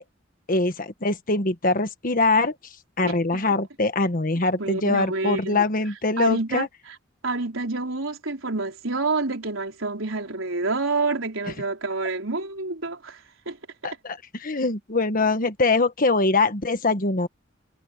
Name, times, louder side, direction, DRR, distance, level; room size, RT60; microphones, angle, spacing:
voice 1, 0.5-2.5 3.0-6.7 13.8-17.3, left 3 dB, 45° left, 1.5 m, -23 dB
voice 2, 3.0-3.4 4.6-5.6 6.2-6.7 7.2-13.6, right 3 dB, 90° right, 4.1 m, -28 dB
head